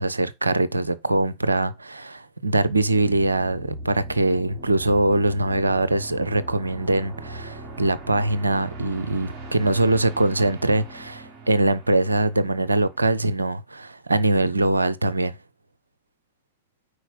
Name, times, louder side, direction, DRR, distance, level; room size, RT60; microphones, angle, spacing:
voice 1, 0.0-15.4, right 2 dB, 80° right, 0.6 m, -22 dB
sound 1, 2.6-13.4, right 2 dB, 35° right, 4.3 m, -40 dB
8.1 x 5.0 x 5.3 m
figure-of-eight pair, 90°, 0 cm